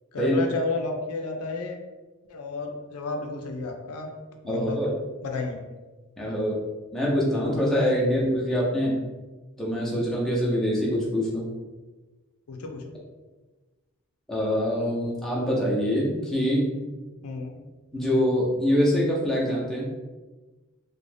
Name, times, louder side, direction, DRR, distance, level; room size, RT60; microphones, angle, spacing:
voice 1, 0.1-1.8 2.3-4.1 4.4-4.8 5.2-5.6 12.5-12.9 17.2-17.6, left 3 dB, 90° left, 3 dB, 0.4 m, -31 dB
voice 2, 4.4-4.9 6.2-6.6 6.9-9.0 9.6-11.5 14.3-16.6 17.9-19.9, equal, ahead, -6 dB, 0.5 m, -24 dB
2.5 x 2.1 x 3.2 m, 1.2 s
head